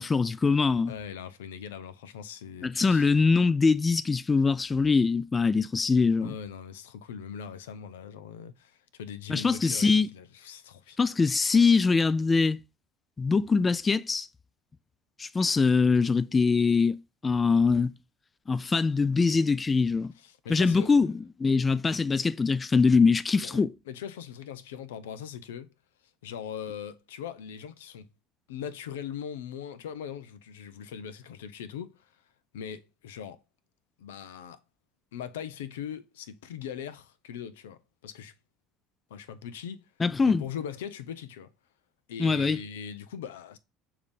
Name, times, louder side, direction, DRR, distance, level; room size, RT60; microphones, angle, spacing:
voice 1, 0.0-0.9 2.6-6.3 9.3-10.1 11.0-12.6 13.2-14.3 15.2-17.0 17.2-17.9 18.5-20.1 20.5-21.1 21.4-23.7 40.0-40.4 42.2-42.6, left 4 dB, 25° left, 0.3 m, -23 dB
voice 2, 0.9-3.1 6.2-11.0 20.2-21.1 23.4-25.7 26.2-28.1 28.5-32.2 32.5-33.4 34.0-34.6 35.1-38.3 39.1-39.9 40.2-41.5 42.1-43.6, left 8 dB, 85° left, 0.5 m, -40 dB
6.7 x 2.7 x 5.2 m
hypercardioid pair, 75°, 0 cm